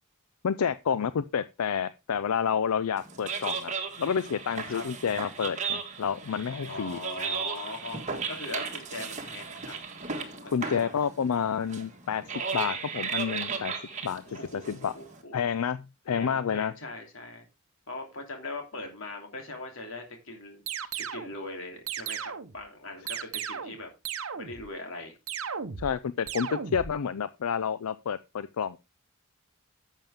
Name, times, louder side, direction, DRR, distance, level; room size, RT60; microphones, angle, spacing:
voice 1, 0.4-3.7 4.0-7.0 10.5-14.9 15.3-16.7 25.8-28.8, left 7 dB, 90° left, 0.5 m, -29 dB
sound 1, 3.0-15.2, right 5 dB, 35° right, 1.5 m, -36 dB
voice 2, 6.6-9.7 10.1-10.9 14.2-15.3 16.1-17.5 17.9-20.6 20.9-23.9 24.3-25.1, left 2 dB, 60° left, 3.1 m, -41 dB
sound 2, 20.7-21.3 21.9-22.6 23.1-23.8 24.1-24.7 25.3-26.0 26.3-27.0, right 7 dB, 70° right, 0.8 m, -35 dB
11.0 x 7.4 x 3.5 m
head